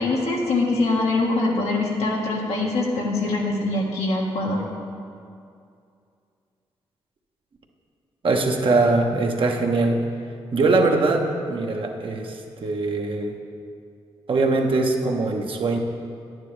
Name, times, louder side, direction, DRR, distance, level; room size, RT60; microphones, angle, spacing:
voice 1, 0.0-4.6, left 2 dB, 80° left, -2 dB, 1.5 m, -23 dB
voice 2, 8.2-10.1 10.5-13.4 14.3-15.8, right 3 dB, 55° right, 2 dB, 1.1 m, -22 dB
10.5 x 9.3 x 3.3 m, 2.4 s
supercardioid pair, 55°, 11 cm